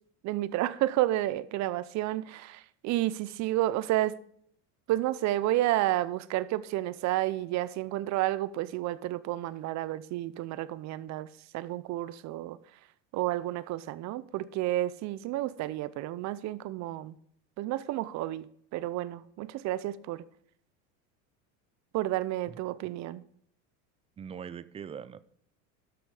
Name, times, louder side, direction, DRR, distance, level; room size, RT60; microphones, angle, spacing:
voice 1, 0.2-4.2 4.9-11.3 11.5-12.6 13.1-17.2 17.6-18.5 18.7-20.2 21.9-23.2, right 15 dB, 45° right, 0.7 m, -31 dB
voice 2, 24.2-25.2, right 7 dB, 15° right, 0.4 m, -41 dB
12.0 x 6.2 x 4.8 m
supercardioid pair, 110°, 40 cm